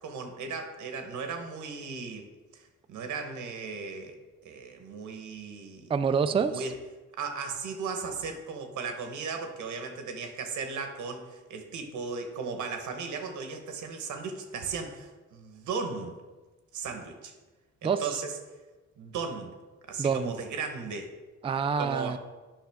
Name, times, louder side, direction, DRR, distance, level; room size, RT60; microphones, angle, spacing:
voice 1, 0.0-2.3 2.5-4.2 4.4-5.9 6.3-6.8 7.2-16.1 16.7-17.3 17.8-18.4 19.0-19.5 19.9-21.1 21.8-22.2, right 5 dB, 85° right, 5 dB, 1.1 m, -36 dB
voice 2, 5.9-6.6 17.8-18.0 20.0-20.3 21.4-22.2, right 6 dB, 20° right, 9 dB, 0.3 m, -27 dB
9.0 x 5.6 x 3.5 m, 1.2 s
cardioid pair, 85°, 29 cm